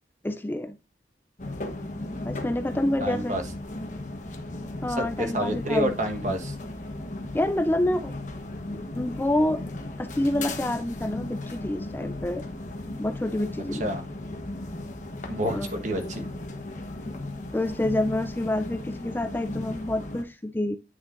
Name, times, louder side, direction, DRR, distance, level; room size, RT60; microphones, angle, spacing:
voice 1, 0.2-0.8 2.2-3.4 4.8-6.0 7.3-8.1 8.7-9.7 10.0-12.4 13.0-13.9 15.5-15.7 17.5-20.8, left 1 dB, 10° left, 0.4 m, -27 dB
sound 1, 1.4-20.2, left 2 dB, 45° left, 1.1 m, -36 dB
voice 2, 3.0-3.4 5.0-6.5 13.8-14.0 15.3-16.2, equal, 40° right, 1.3 m, -28 dB
9.4 x 6.4 x 2.6 m
head